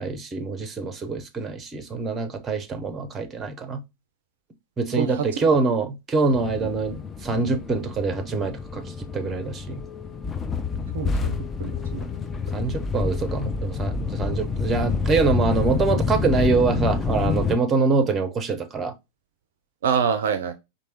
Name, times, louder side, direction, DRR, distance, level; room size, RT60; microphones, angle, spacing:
voice 1, 0.0-3.8 4.8-9.8 12.5-18.9, right 4 dB, 20° right, 0.7 m, -25 dB
sound 1, 6.3-17.6, left 5 dB, 15° left, 0.4 m, -28 dB
voice 2, 10.9-11.3 11.6-12.0 19.8-20.5, right 7 dB, 60° right, 0.4 m, -25 dB
4.6 x 2.7 x 2.7 m
figure-of-eight pair, 90°, 0 cm